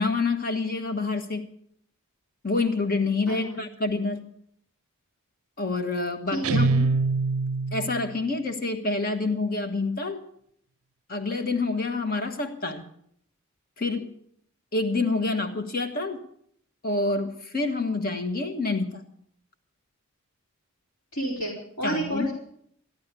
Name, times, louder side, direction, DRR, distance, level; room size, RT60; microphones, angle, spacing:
voice 1, 0.0-1.4 2.4-4.3 5.6-6.9 7.7-10.2 11.1-12.8 13.8-14.1 14.7-16.2 16.8-19.0 21.8-22.3, left 3 dB, 40° left, 7 dB, 1.5 m, -27 dB
voice 2, 3.3-3.6 6.3-6.6 21.1-22.3, right 1 dB, 70° left, -5 dB, 4.3 m, -30 dB
Guitar, 6.4-8.1, right 4 dB, 75° right, 0.5 m, -24 dB
14.0 x 11.5 x 6.8 m, 0.67 s
head